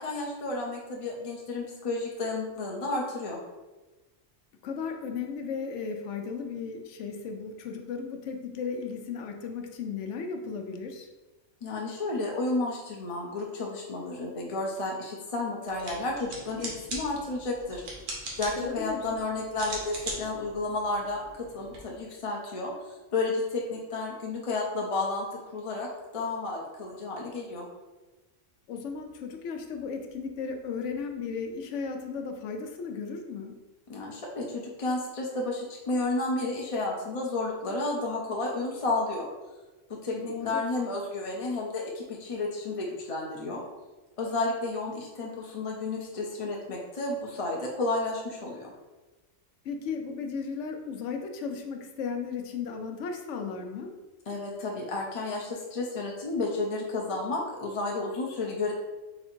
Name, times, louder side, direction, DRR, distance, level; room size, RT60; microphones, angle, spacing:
voice 1, 0.0-3.4 11.6-17.8 18.4-25.9 26.1-27.7 33.9-39.3 39.9-43.6 44.2-48.7 54.3-58.7, left 2 dB, 40° left, -1 dB, 0.5 m, -32 dB
voice 2, 4.6-11.1 18.6-19.1 28.7-33.6 40.1-40.6 49.6-53.9, left 5 dB, 75° left, 4 dB, 0.9 m, -35 dB
sound 1, 15.7-21.8, right 2 dB, 80° right, 1.4 m, -41 dB
4.1 x 2.7 x 4.3 m, 1.2 s
omnidirectional pair, 1.3 m